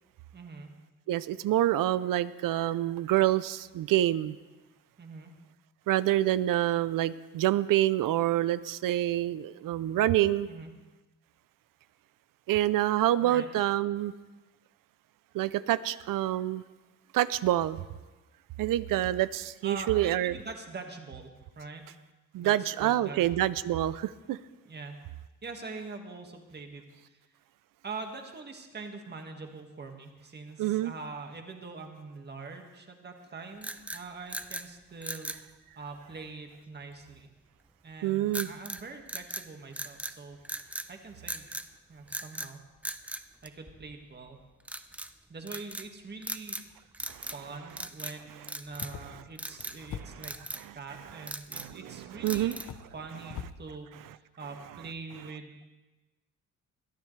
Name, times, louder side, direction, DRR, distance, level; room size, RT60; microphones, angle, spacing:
voice 1, 0.3-0.7 5.0-5.3 10.4-10.7 13.2-13.5 19.6-21.9 22.4-23.5 24.7-25.0 25.4-27.2 27.8-35.3 35.8-37.3 37.8-40.4 40.9-41.5 41.9-42.6 43.4-44.4 45.3-50.4 50.8-52.5 52.9-55.7, right 4 dB, 30° right, 4 dB, 1.8 m, -44 dB
voice 2, 1.1-4.4 5.9-10.5 12.5-14.1 15.3-16.6 17.1-17.8 18.6-20.4 22.3-24.4 30.6-30.9 38.0-38.5 47.1-47.6 49.8-50.2 50.6-52.6 53.0-53.5 54.4-54.9, right 14 dB, 75° right, 16 dB, 0.6 m, -27 dB
sound 1, 33.6-34.7 35.0-35.4 38.3-38.8 39.1-40.2 40.4-40.9 41.3-41.7 42.1-42.5 42.8-44.0 44.6-45.1 45.5-45.9 46.2-46.7 46.9-47.4 47.7-48.2 48.5-49.0 49.4-49.8 50.2-50.6 51.1-51.8 52.3-52.8, right 1 dB, 5° right, 0.5 m, -39 dB
sound 2, 48.6-50.5 51.5-51.6 52.3-53.6, left 8 dB, 60° left, 1.0 m, -44 dB
21.5 x 14.0 x 3.3 m, 1.2 s
cardioid pair, 125°, 33 cm